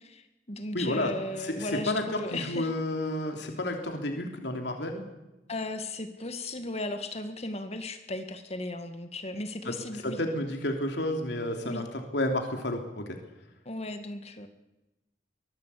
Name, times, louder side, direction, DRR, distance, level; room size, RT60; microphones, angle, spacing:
voice 1, 0.0-2.7 5.5-10.2 11.6-11.8 13.7-14.5, left 2 dB, 35° left, 7 dB, 1.9 m, -36 dB
voice 2, 0.7-1.1 1.4-5.0 9.6-9.7 10.0-13.2, left 1 dB, 75° left, 3 dB, 3.2 m, -31 dB
24.0 x 20.0 x 8.5 m, 0.98 s
head